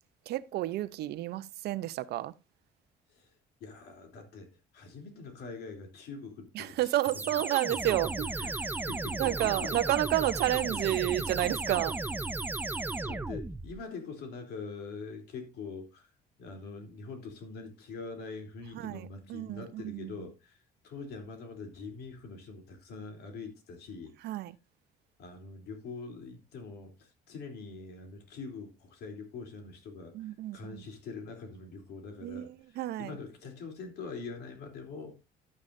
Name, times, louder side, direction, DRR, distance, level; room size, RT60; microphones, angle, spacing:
voice 1, 0.3-2.3 6.5-8.6 9.2-12.0 18.7-20.2 24.2-24.5 30.1-30.8 32.2-33.2, right 15 dB, 75° right, 0.7 m, -31 dB
voice 2, 3.6-7.4 8.4-9.7 13.1-16.1 16.4-20.6 20.8-24.1 25.2-35.3, left 4 dB, 75° left, 3.3 m, -44 dB
sound 1, 7.0-13.8, right 2 dB, 10° right, 0.6 m, -35 dB
11.5 x 9.7 x 2.6 m
cardioid pair, 110°, 17 cm